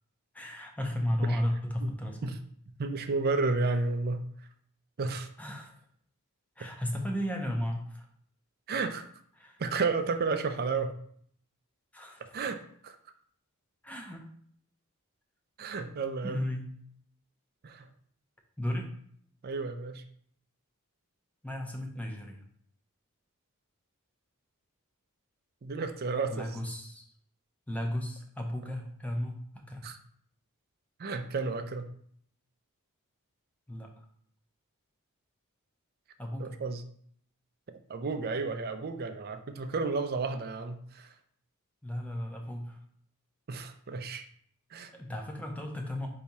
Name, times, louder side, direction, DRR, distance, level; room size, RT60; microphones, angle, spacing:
voice 1, 0.3-2.3 5.4-5.7 6.6-8.0 9.4-9.6 11.9-12.2 13.8-14.2 16.2-16.7 18.6-18.9 21.4-22.4 26.3-27.0 27.7-29.9 33.7-33.9 36.2-36.6 41.8-42.8 44.9-46.1, left 1 dB, 5° left, 2 dB, 0.7 m, -34 dB
voice 2, 2.8-4.2 5.0-5.3 6.6-6.7 8.7-9.0 9.6-10.9 12.3-12.6 12.8-13.0 15.6-16.5 17.6-17.9 19.4-20.0 25.6-26.5 29.8-30.0 31.0-31.9 36.4-36.8 37.7-41.1 43.5-44.3 44.7-44.9, right 4 dB, 45° right, 8 dB, 0.4 m, -32 dB
4.1 x 2.8 x 4.7 m, 0.62 s
head